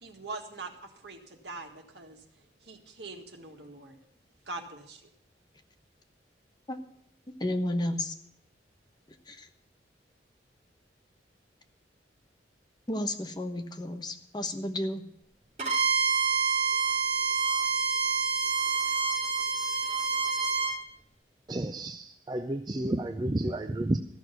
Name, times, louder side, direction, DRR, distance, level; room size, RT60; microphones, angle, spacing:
voice 1, 0.0-2.2 2.6-4.0 4.5-5.0, right 3 dB, 70° right, 1.8 m, -42 dB
voice 2, 7.4-8.1 9.3-9.5 12.9-15.0, left 1 dB, 25° left, 1.0 m, -32 dB
Bowed string instrument, 15.6-20.8, right 5 dB, 40° right, 3.5 m, -27 dB
voice 3, 21.5-24.0, right 1 dB, 25° right, 0.5 m, -31 dB
14.0 x 6.4 x 9.2 m
head